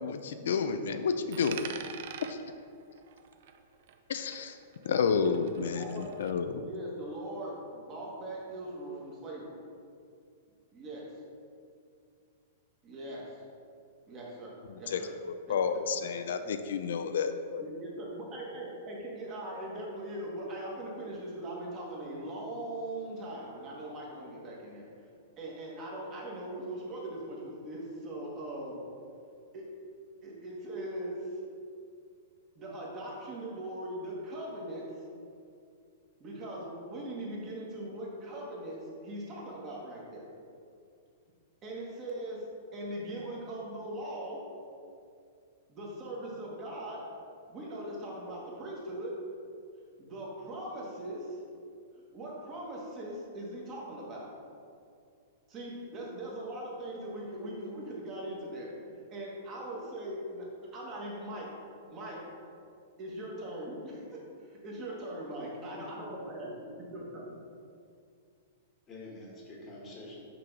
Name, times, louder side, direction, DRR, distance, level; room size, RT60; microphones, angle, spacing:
voice 1, 0.0-1.7 2.3-2.4 4.1-4.6 4.9-6.6 14.7-17.6, left 6 dB, 75° left, 9 dB, 0.4 m, -31 dB
Coin (dropping), 1.3-4.1 4.3-6.3, right 8 dB, 50° right, 0.4 m, -46 dB
voice 2, 4.8-5.2 5.6-6.1 6.6-9.6 10.7-11.1 12.8-13.3 14.0-15.1 15.5-15.6 16.0-16.4 17.6-24.9 25.4-28.8 29.5-29.7 30.2-31.3 32.5-34.9 36.2-40.3 41.6-42.4 42.7-44.4 45.7-47.1 47.5-49.2 50.0-51.4 52.1-54.3 55.5-58.7 59.1-61.5 61.9-62.3 63.0-66.5 66.8-67.4, right 1 dB, 25° right, -3 dB, 1.4 m, -40 dB
voice 3, 65.8-66.9 68.9-70.3, left 1 dB, 20° left, -3 dB, 1.3 m, -47 dB
6.0 x 3.8 x 5.9 m, 2.4 s
supercardioid pair, 165°, 0 cm